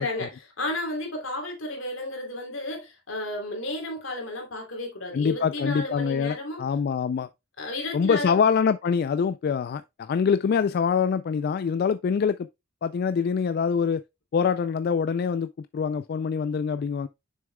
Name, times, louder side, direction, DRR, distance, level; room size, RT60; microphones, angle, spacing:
voice 1, 0.0-6.6 7.6-8.4, left 1 dB, 75° left, 2.9 m, -33 dB
voice 2, 5.1-7.3 7.9-12.5 12.8-14.0 14.3-17.1, left 6 dB, 50° left, 0.3 m, -25 dB
7.1 x 6.3 x 2.2 m
head